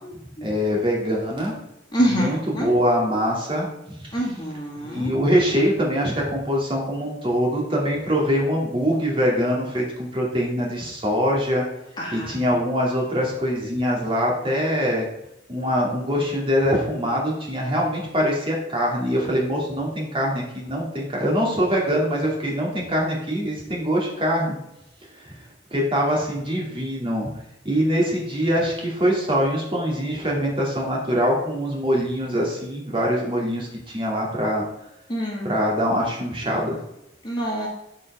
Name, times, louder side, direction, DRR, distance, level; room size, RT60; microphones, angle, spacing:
voice 1, 0.4-1.5 2.0-3.7 4.1-4.3 4.8-11.6 12.1-15.1 15.5-24.6 25.2-25.4 25.7-27.3 27.6-33.7 33.9-34.6 35.5-36.8, equal, 30° right, -2 dB, 2.3 m, -23 dB
voice 2, 1.9-2.3 2.5-2.7 4.1-5.1 12.0-12.3 35.1-35.5 37.2-37.7, equal, 25° left, -3 dB, 2.0 m, -25 dB
8.8 x 4.7 x 4.8 m, 0.85 s
head